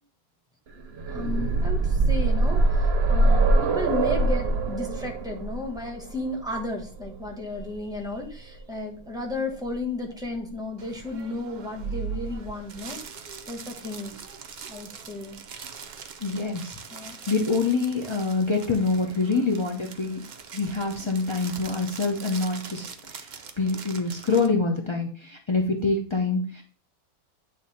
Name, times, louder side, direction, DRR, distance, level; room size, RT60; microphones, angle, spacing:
sound 1, 0.8-8.6 9.7-9.8 10.2-10.3, right 2 dB, 50° right, 0.8 m, -24 dB
voice 1, 1.1-13.0 13.5-14.1 14.6-15.4 16.9-17.2, left 2 dB, 5° right, 1 dB, 1.1 m, -34 dB
sound 2, 10.8-24.5, right 6 dB, 75° right, 0.4 m, -41 dB
voice 2, 16.2-20.2 20.5-23.3 23.6-26.6, left 3 dB, 50° left, 1 dB, 0.3 m, -26 dB
8.6 x 3.4 x 4.2 m, 0.40 s
omnidirectional pair, 1.6 m